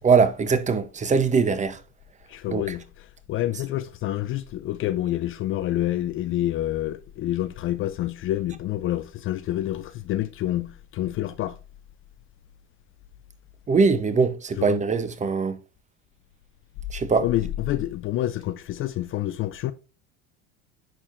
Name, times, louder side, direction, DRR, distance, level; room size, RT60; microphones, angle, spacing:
voice 1, 0.0-1.8 2.5-2.8 13.7-15.6 16.9-17.3, right 5 dB, 20° right, 0.7 m, -22 dB
voice 2, 2.3-2.8 3.3-11.6 14.6-14.8 17.2-19.7, left 14 dB, 40° left, 0.4 m, -28 dB
10.0 x 4.4 x 2.5 m
supercardioid pair, 95°, 35 cm